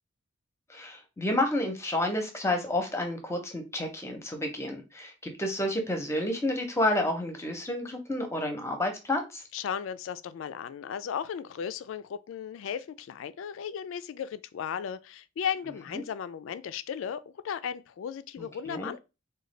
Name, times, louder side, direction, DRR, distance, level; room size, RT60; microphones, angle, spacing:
voice 1, 0.7-9.4 15.9-16.0 18.4-18.9, left 1 dB, 15° left, 0.6 m, -30 dB
voice 2, 9.5-19.0, left 8 dB, 70° left, 0.3 m, -35 dB
3.7 x 2.3 x 3.2 m
head